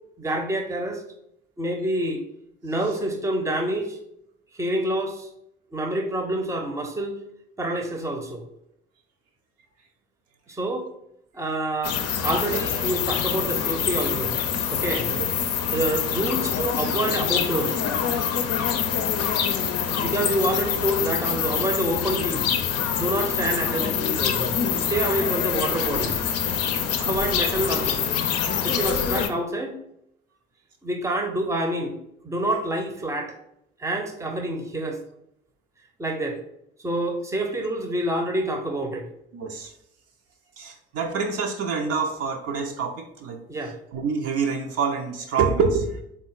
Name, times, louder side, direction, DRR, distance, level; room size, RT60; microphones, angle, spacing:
voice 1, 0.2-1.0 1.6-2.2 2.6-4.0 4.6-5.3 5.7-7.2 7.6-8.4 10.5-10.9 11.3-14.3 14.7-15.1 15.7-17.8 19.9-22.6 23.0-24.6 24.9-26.2 27.0-28.1 28.6-29.7 30.8-32.0 32.2-33.3 33.8-35.0 36.0-36.4 36.8-39.0 43.5-43.8, right 1 dB, 10° right, 3 dB, 0.7 m, -27 dB
sound 1, 11.8-29.3, left 8 dB, 55° left, 0.5 m, -25 dB
voice 2, 39.3-39.7 40.6-43.4 43.9-45.9, right 5 dB, 55° right, 2 dB, 0.6 m, -26 dB
3.7 x 2.2 x 3.9 m, 0.77 s
figure-of-eight pair, 45°, 30 cm